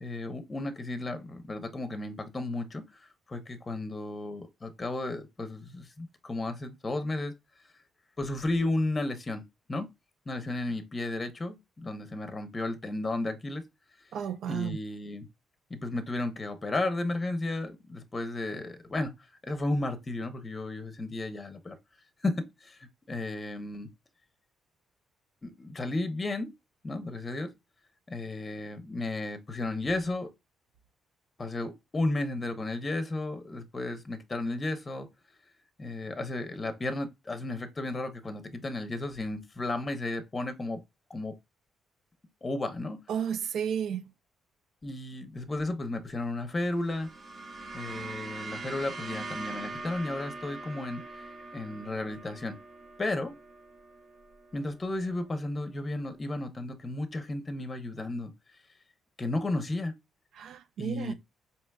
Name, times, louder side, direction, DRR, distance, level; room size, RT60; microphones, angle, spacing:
voice 1, 0.0-7.3 8.2-9.4 9.7-9.9 10.3-13.6 14.5-15.3 15.7-19.1 19.4-21.8 22.2-23.9 25.4-26.5 26.8-27.5 28.1-30.3 31.4-35.1 35.8-40.8 41.1-41.4 42.4-43.0 44.8-47.1 47.7-51.2 51.5-52.6 53.0-53.3 54.5-58.3 59.2-59.9 60.8-61.1, left 2 dB, 30° left, 0.7 m, -33 dB
voice 2, 14.1-14.8 43.1-44.0 60.4-61.1, right 8 dB, 75° right, 0.4 m, -32 dB
sound 1, 46.6-55.1, right 3 dB, 40° right, 0.9 m, -42 dB
4.5 x 2.9 x 2.3 m
cardioid pair, 90°, 0 cm